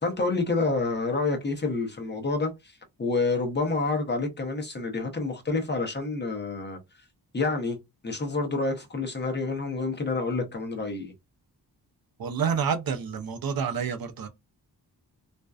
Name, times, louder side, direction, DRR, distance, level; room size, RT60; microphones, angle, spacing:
voice 1, 0.0-6.8 7.3-7.8 8.0-11.1, left 3 dB, 25° left, 0.7 m, -28 dB
voice 2, 12.2-14.3, right 6 dB, 60° right, 0.6 m, -28 dB
2.5 x 2.1 x 2.3 m
wide cardioid pair, 125°, 41 cm